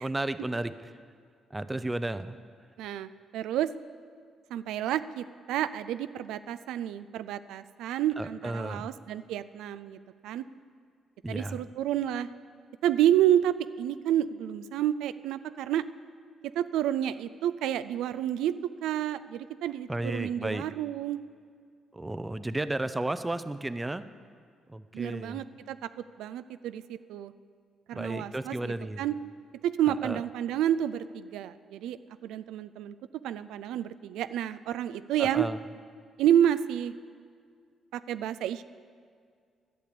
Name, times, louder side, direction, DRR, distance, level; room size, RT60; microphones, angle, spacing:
voice 1, 0.0-0.9 1.5-2.4 8.2-8.9 11.2-11.6 19.9-20.7 21.9-24.0 24.7-25.4 27.9-29.0 30.0-30.2 35.2-35.6, right 2 dB, 15° right, 13 dB, 0.5 m, -33 dB
voice 2, 2.8-3.7 4.5-10.0 10.2-10.4 11.3-12.3 12.8-15.8 16.6-21.2 24.9-25.9 26.2-27.3 27.9-29.1 29.6-32.9 33.2-35.5 36.2-36.9 37.9-38.6, right 11 dB, 90° right, 13 dB, 0.3 m, -29 dB
12.0 x 6.7 x 8.6 m, 2.1 s
cardioid pair, 90°, 0 cm